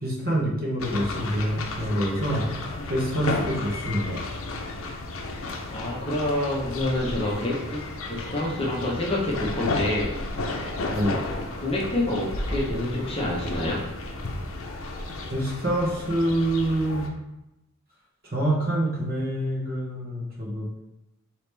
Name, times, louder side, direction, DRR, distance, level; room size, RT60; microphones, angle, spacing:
voice 1, 0.0-2.4 2.9-4.2 10.9-11.2 15.3-17.1 18.2-20.7, right 1 dB, 45° right, -3 dB, 1.0 m, -26 dB
sound 1, 0.8-17.1, left 2 dB, 75° left, 0.6 m, -33 dB
voice 2, 5.7-10.3 10.7-11.2 11.6-13.9, left 1 dB, 25° left, -3 dB, 0.8 m, -28 dB
4.9 x 2.9 x 3.3 m, 0.91 s
head